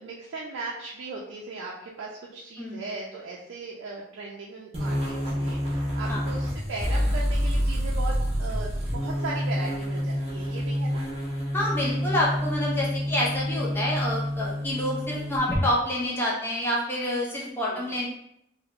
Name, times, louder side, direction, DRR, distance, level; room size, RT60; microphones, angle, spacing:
voice 1, 0.0-11.0 17.7-17.9, right 3 dB, 85° right, -3 dB, 0.4 m, -38 dB
sound 1, 4.7-15.6, equal, 30° right, 0.6 m, -28 dB
voice 2, 11.5-18.1, left 1 dB, 10° left, -5 dB, 0.3 m, -28 dB
3.2 x 2.0 x 2.4 m, 0.77 s
head